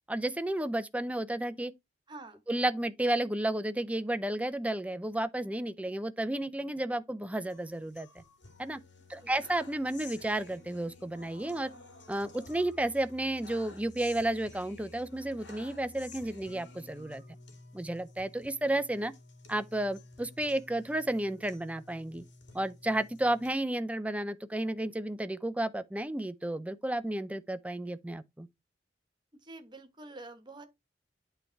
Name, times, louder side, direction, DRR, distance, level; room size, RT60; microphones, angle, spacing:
voice 1, 0.1-1.7 2.5-8.1 8.6-8.8 9.1-11.7 12.1-17.2 17.7-19.1 19.5-22.2 22.5-28.5, right 1 dB, 10° right, 0.5 m, -32 dB
voice 2, 2.1-2.4 9.0-9.4 29.4-30.7, right 2 dB, 25° right, 1.2 m, -48 dB
sound 1, 7.5-23.5, left 2 dB, 80° left, 1.9 m, -53 dB
8.7 x 3.3 x 4.5 m
head